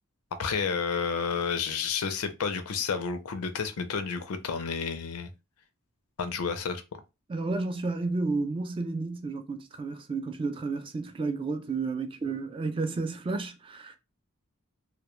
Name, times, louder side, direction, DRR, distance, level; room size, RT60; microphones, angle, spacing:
voice 1, 0.4-5.3 6.2-6.8, left 6 dB, 75° left, 0.5 m, -30 dB
voice 2, 7.3-14.0, right 3 dB, 25° right, 0.3 m, -31 dB
2.2 x 2.1 x 3.0 m
head